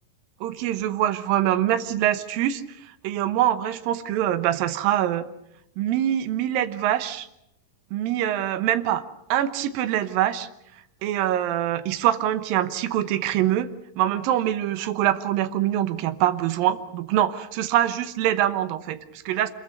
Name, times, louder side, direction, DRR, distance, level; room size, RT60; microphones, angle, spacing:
voice 1, 0.4-5.3 5.8-7.3 7.9-9.0 9.3-10.5 11.0-13.7 14.0-19.5, right 12 dB, 80° right, 11 dB, 2.8 m, -24 dB
26.5 x 22.0 x 6.7 m, 0.81 s
omnidirectional pair, 4.0 m